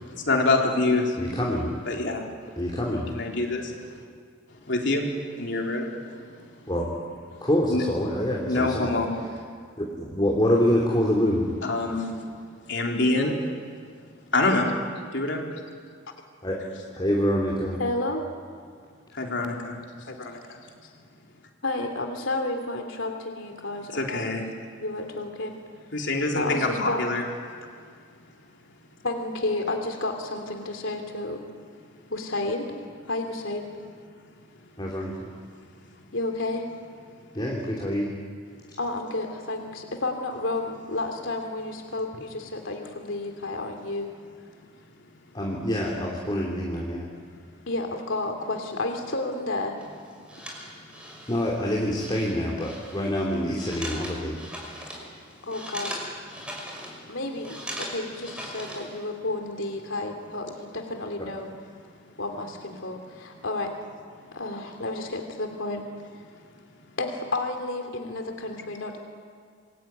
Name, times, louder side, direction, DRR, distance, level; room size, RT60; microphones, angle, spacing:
voice 1, 0.1-1.2 1.9-2.4 3.1-4.0 4.5-6.5 7.3-7.8 8.5-9.4 11.6-12.3 12.7-13.4 13.7-13.8 14.3-15.5 19.1-20.1 23.9-24.5 25.9-27.2, left 2 dB, 60° left, 0 dB, 3.8 m, -26 dB
voice 2, 1.2-1.7 2.6-3.1 6.7-6.9 7.4-8.9 9.8-11.4 16.4-16.6 16.9-17.8 34.8-35.3 37.3-38.1 45.3-47.1 51.3-54.4, equal, 20° left, -3 dB, 3.2 m, -26 dB
voice 3, 17.8-18.2 20.1-20.9 21.6-24.2 24.8-25.6 26.3-27.0 29.0-31.4 32.1-32.7 33.1-33.7 36.1-36.7 38.8-44.1 47.7-49.8 55.4-56.1 57.1-61.5 62.2-63.7 64.3-65.8 67.0-69.0, left 2 dB, 75° left, 4 dB, 2.9 m, -31 dB
sound 1, 49.8-59.1, equal, 5° right, 5.5 m, -40 dB
27.5 x 22.0 x 9.4 m, 2.1 s
head